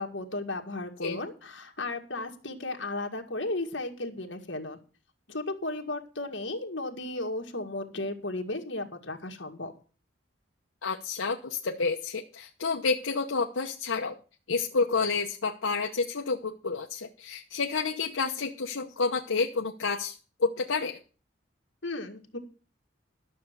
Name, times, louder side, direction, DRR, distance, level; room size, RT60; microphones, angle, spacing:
voice 1, 0.0-4.8 5.3-9.7 21.8-22.4, left 2 dB, 65° left, 3 dB, 2.0 m, -35 dB
voice 2, 10.8-14.2 14.5-20.1 20.4-21.0, left 4 dB, 85° left, 1 dB, 1.0 m, -29 dB
12.0 x 6.9 x 6.8 m, 0.37 s
head